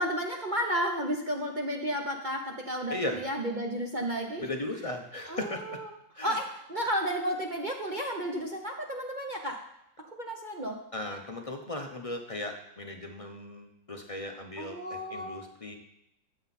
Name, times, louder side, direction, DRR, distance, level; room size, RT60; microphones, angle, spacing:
voice 1, 0.0-4.4 5.3-5.4 5.7-5.8 6.2-9.6 10.0-10.8 14.6-15.4, equal, 40° right, 1 dB, 0.7 m, -32 dB
voice 2, 2.9-3.2 4.4-5.8 6.1-6.4 10.9-15.8, left 1 dB, 50° left, 4 dB, 0.4 m, -37 dB
12.5 x 7.8 x 4.2 m, 0.81 s
omnidirectional pair, 2.0 m